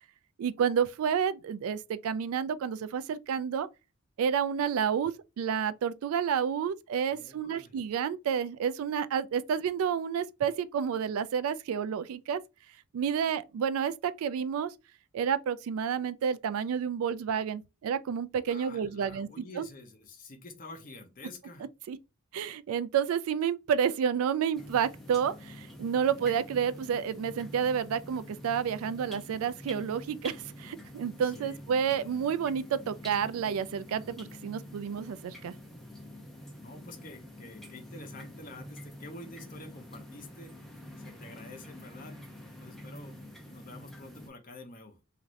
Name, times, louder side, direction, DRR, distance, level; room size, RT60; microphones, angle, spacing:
voice 1, 0.4-3.7 4.2-12.4 12.9-14.7 15.1-19.7 21.9-22.0 22.3-35.5, right 7 dB, 85° right, 0.3 m, -30 dB
voice 2, 7.1-7.7 18.5-21.7 31.2-31.6 36.6-42.1 42.6-43.2 43.5-45.0, left 2 dB, 40° left, 0.7 m, -48 dB
sound 1, 24.5-44.3, left 1 dB, ahead, 0.5 m, -47 dB
3.1 x 2.5 x 2.5 m
head